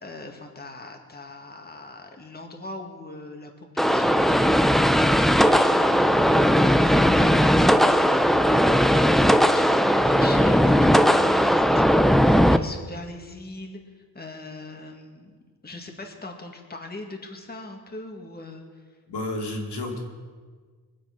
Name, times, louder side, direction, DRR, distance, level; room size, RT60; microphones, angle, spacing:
voice 1, 0.0-4.9 5.2-13.8 14.1-18.6, left 2 dB, 25° left, 2 dB, 2.1 m, -41 dB
sound 1, 3.8-12.6, equal, ahead, 0.5 m, -18 dB
voice 2, 19.1-20.0, left 1 dB, 80° left, 0 dB, 3.0 m, -31 dB
22.5 x 7.5 x 6.0 m, 1.5 s
cardioid pair, 95°, 40 cm